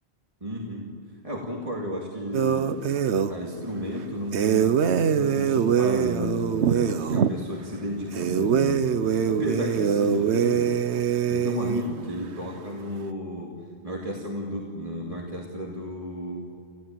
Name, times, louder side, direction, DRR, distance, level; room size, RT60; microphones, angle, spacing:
voice 1, 0.4-0.9 1.2-2.8 3.3-10.8 11.3-16.5, equal, 30° right, -2 dB, 2.5 m, -33 dB
sound 1, 2.3-3.3 4.3-7.3 8.1-11.8, right 7 dB, 85° right, 1.1 m, -23 dB
28.5 x 15.5 x 9.0 m, 2.5 s
omnidirectional pair, 1.1 m